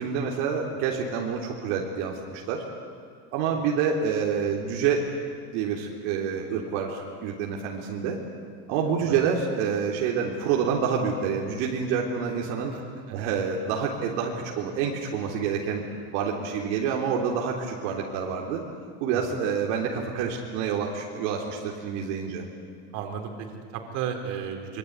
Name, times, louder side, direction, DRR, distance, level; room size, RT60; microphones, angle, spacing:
voice 1, 0.0-2.6 3.3-5.1 5.5-8.2 8.7-12.7 13.1-15.8 16.1-18.6 19.0-22.4, right 6 dB, 70° right, -1 dB, 3.8 m, -27 dB
voice 2, 12.7-13.2 19.1-19.4 22.9-24.8, right 8 dB, 55° right, 4 dB, 4.4 m, -35 dB
26.0 x 24.0 x 9.7 m, 2.3 s
cardioid pair, 150°, 35 cm